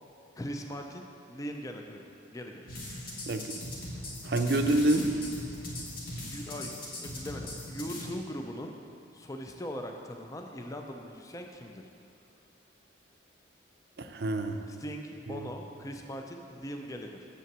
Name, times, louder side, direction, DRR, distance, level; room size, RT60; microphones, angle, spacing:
voice 1, 0.4-2.0 2.3-2.7 6.2-6.7 7.0-8.7 9.1-11.8 14.7-17.3, equal, 15° left, 3 dB, 0.4 m, -40 dB
sound 1, 2.7-8.1, left 1 dB, 45° left, 1.5 m, -40 dB
voice 2, 3.3-3.6 4.2-5.1 14.0-14.6 15.3-15.5, right 2 dB, 55° right, 6 dB, 0.5 m, -27 dB
6.8 x 5.6 x 7.4 m, 2.8 s
head